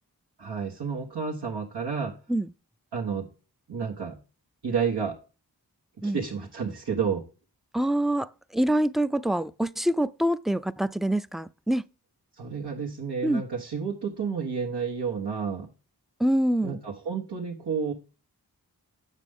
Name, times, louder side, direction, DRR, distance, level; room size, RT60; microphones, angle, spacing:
voice 1, 0.4-2.1 2.9-3.3 3.7-4.2 4.6-5.2 6.0-7.2 12.4-15.7 16.6-17.9, right 6 dB, 85° right, 1.5 m, -30 dB
voice 2, 7.7-11.8 13.2-13.4 16.2-16.8, right 1 dB, ahead, 0.4 m, -25 dB
8.2 x 6.7 x 3.6 m
cardioid pair, 40°, 40 cm